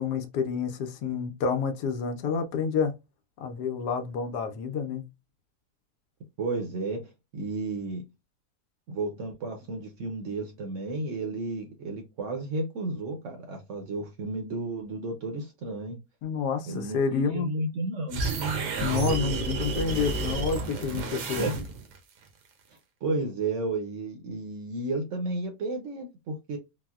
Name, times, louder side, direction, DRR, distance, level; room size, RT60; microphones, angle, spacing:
voice 1, 0.0-2.9 3.4-5.1 16.2-17.5 18.8-21.5, left 5 dB, 80° left, 1.2 m, -29 dB
voice 2, 6.4-7.0 7.3-8.0 8.9-16.0 16.7-18.3 21.4-21.5 23.0-26.6, right 2 dB, 60° right, 0.8 m, -32 dB
sound 1, 18.1-22.0, right 4 dB, 80° right, 1.3 m, -30 dB
4.1 x 2.0 x 2.3 m
omnidirectional pair, 1.7 m